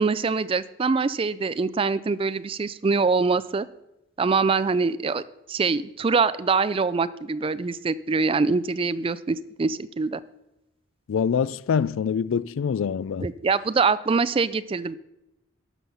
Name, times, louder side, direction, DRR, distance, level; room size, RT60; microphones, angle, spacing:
voice 1, 0.0-3.7 4.2-5.2 5.5-10.2 13.2-15.0, right 4 dB, 25° right, 0.3 m, -24 dB
voice 2, 11.1-13.3, left 7 dB, 70° left, 0.3 m, -25 dB
12.0 x 7.0 x 5.5 m
head